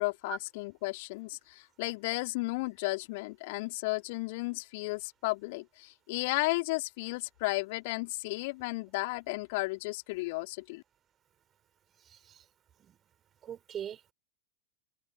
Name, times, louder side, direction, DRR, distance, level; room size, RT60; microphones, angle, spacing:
voice 1, 0.0-10.8, left 25 dB, 50° left, 2.9 m, -34 dB
voice 2, 12.1-12.4 12.9-13.0 13.4-14.1, right 9 dB, 25° right, 3.9 m, -41 dB
open air
figure-of-eight pair, 90°, 0 cm